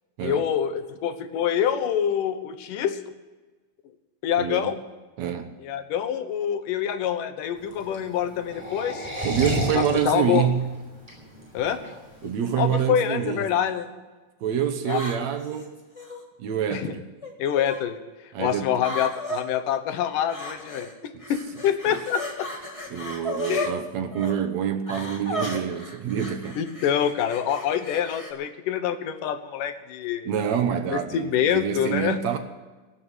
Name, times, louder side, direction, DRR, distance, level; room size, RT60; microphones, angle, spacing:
voice 1, 0.2-3.0 4.2-4.8 5.6-9.1 9.7-10.5 11.5-11.8 12.6-13.9 14.9-15.0 16.7-16.9 17.4-18.0 18.4-22.5 23.5-23.7 26.6-30.3 30.9-32.2, left 9 dB, 85° left, 10 dB, 2.7 m, -26 dB
voice 2, 4.4-4.8 5.2-5.5 9.2-10.7 12.2-13.5 14.4-15.8 16.4-17.1 18.3-18.8 21.9-22.0 22.9-26.6 30.3-32.4, right 9 dB, 65° right, 7 dB, 2.1 m, -26 dB
sound 1, 7.6-12.7, equal, 10° right, 6.2 m, -31 dB
sound 2, 12.2-12.5 13.3-13.8 14.8-16.2 17.2-17.8 18.8-19.4 20.3-20.9 21.2-23.7 24.1-24.3 24.9-28.3, left 1 dB, 15° left, 1.2 m, -35 dB
19.0 x 7.5 x 8.1 m, 1.2 s
omnidirectional pair, 3.7 m